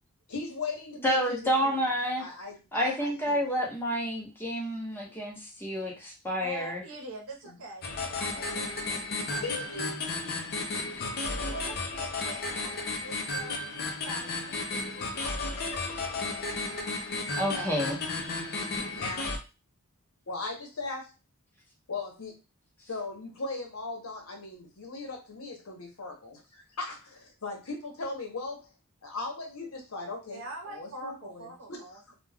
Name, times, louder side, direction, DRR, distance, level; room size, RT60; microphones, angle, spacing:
voice 1, 0.3-1.9 2.2-3.6 5.8-5.9 7.4-7.6 9.4-10.0 11.3-11.7 12.6-12.7 13.8-13.9 15.6-15.8 17.5-17.7 18.9-19.3 20.3-21.1 21.9-22.4 22.8-28.7 29.0-30.4 30.7-32.1, left 3 dB, 75° left, 2 dB, 0.9 m, -38 dB
voice 2, 1.0-2.2 2.7-6.8 17.4-18.0, equal, 10° left, -2 dB, 0.8 m, -29 dB
voice 3, 6.4-7.8 8.2-9.0 9.3-9.7 11.2-13.6 14.0-15.4 30.3-32.0, right 2 dB, 65° right, 0 dB, 0.8 m, -44 dB
sound 1, 7.8-19.4, left 3 dB, 45° left, 0.5 m, -33 dB
2.3 x 2.2 x 3.3 m, 0.28 s
head